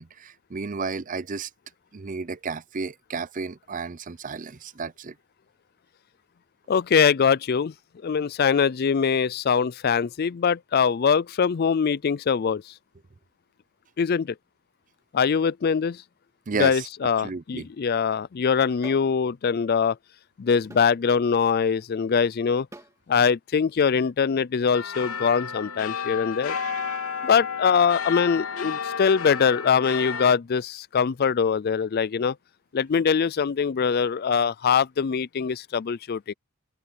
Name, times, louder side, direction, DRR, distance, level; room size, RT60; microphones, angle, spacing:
voice 1, 0.0-1.5 1.9-5.1 16.5-16.9 17.2-17.7, right 4 dB, 35° right, 0.5 m, -32 dB
voice 2, 6.7-7.7 8.0-12.7 14.0-14.3 15.1-16.0 16.6-20.0 20.4-22.7 23.1-26.6 27.2-32.4 32.7-36.3, left 6 dB, 45° left, 0.4 m, -23 dB
sound 1, 18.8-19.1 20.7-20.9 22.7-23.0, right 2 dB, 15° right, 2.4 m, -44 dB
sound 2, 24.7-30.3, left 6 dB, 85° left, 3.5 m, -32 dB
open air
head